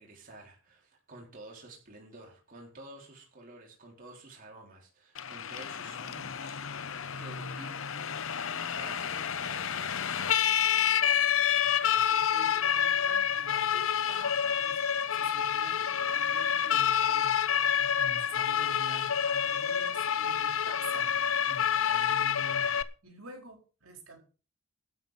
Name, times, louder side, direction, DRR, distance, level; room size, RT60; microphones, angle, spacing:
voice 1, 0.0-6.9 7.2-8.4 8.8-10.4, right 2 dB, 40° right, -1 dB, 4.0 m, -50 dB
Siren, 5.1-22.8, left 9 dB, 65° left, 0.9 m, -28 dB
voice 2, 11.6-21.2 21.5-22.7 23.0-24.2, equal, 70° right, 2 dB, 4.7 m, -48 dB
12.5 x 5.8 x 9.2 m, 0.36 s
head